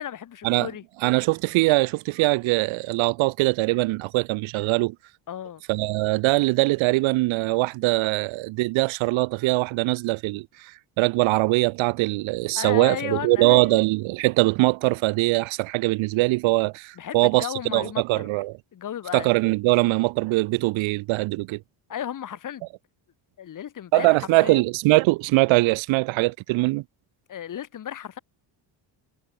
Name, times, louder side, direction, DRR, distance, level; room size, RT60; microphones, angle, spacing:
voice 1, 0.0-0.8 5.3-5.6 12.6-13.9 17.0-19.3 21.9-22.7 23.4-24.6 27.3-28.2, left 10 dB, 40° left, 3.8 m, -34 dB
voice 2, 1.0-5.0 5.7-17.5 17.7-18.6 19.1-21.6 23.9-26.8, right 22 dB, 80° right, 0.7 m, -22 dB
cardioid pair, 170°, 46 cm